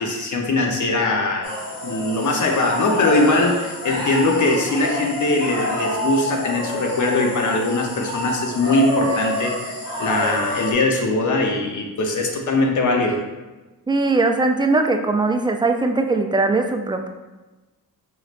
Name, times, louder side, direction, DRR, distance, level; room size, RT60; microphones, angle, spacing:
voice 1, 0.0-1.5 1.8-13.2, left 2 dB, 50° left, 2 dB, 0.8 m, -21 dB
sound 1, 1.4-10.7, left 1 dB, 70° left, 1.4 m, -27 dB
voice 2, 13.9-17.1, right 3 dB, 10° right, 5 dB, 0.3 m, -20 dB
4.9 x 3.1 x 2.5 m, 1.1 s
cardioid pair, 70°, 39 cm